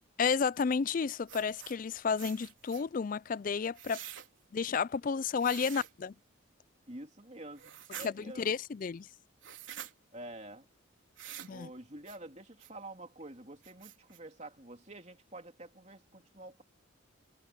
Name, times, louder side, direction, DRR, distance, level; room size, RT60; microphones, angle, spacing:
voice 1, 0.2-4.0 4.5-6.1 8.0-9.1 11.5-11.7, left 5 dB, 40° left, 0.3 m, -32 dB
sound 1, 1.3-1.8 2.2-2.8 3.7-4.3 5.4-5.9 7.6-8.1 9.4-9.9 11.2-11.5 12.1-12.2 12.6-12.7 13.2-13.3 13.6-14.2, right 10 dB, 65° right, 3.9 m, -46 dB
voice 2, 6.9-8.5 10.1-10.7 11.5-16.6, right 1 dB, 35° right, 3.2 m, -48 dB
head